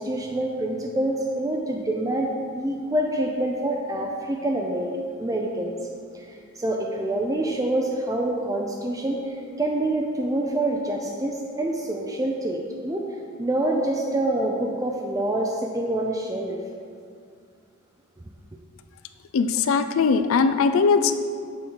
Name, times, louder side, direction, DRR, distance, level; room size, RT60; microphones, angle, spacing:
voice 1, 0.0-5.8 6.3-13.1 13.4-16.6, right 1 dB, 15° right, 0 dB, 0.4 m, -26 dB
voice 2, 19.3-21.1, left 5 dB, 65° left, 10 dB, 0.4 m, -20 dB
6.8 x 3.6 x 5.5 m, 2.2 s
head